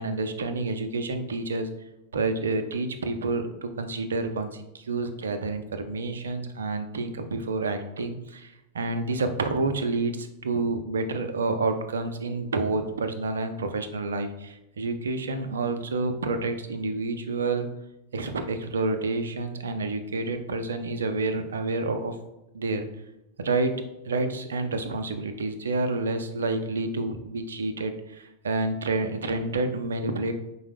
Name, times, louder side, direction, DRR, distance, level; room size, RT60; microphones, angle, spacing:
voice 1, 0.0-1.7 2.1-17.7 18.1-22.2 22.5-22.9 23.4-30.3, right 3 dB, 70° right, 8 dB, 0.4 m, -29 dB
4.6 x 2.0 x 3.3 m, 0.92 s
figure-of-eight pair, 90°, 0 cm